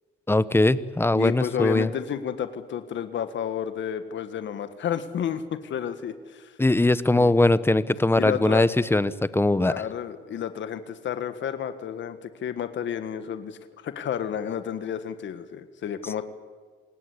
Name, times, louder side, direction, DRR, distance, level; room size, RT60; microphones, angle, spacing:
voice 1, 0.3-1.9 6.6-9.7, left 2 dB, 10° left, 15 dB, 1.1 m, -21 dB
voice 2, 1.1-6.6 7.2-7.3 8.2-8.6 9.6-16.2, left 9 dB, 70° left, 10 dB, 1.7 m, -31 dB
27.5 x 17.5 x 8.5 m, 1.5 s
cardioid pair, 90°, 20 cm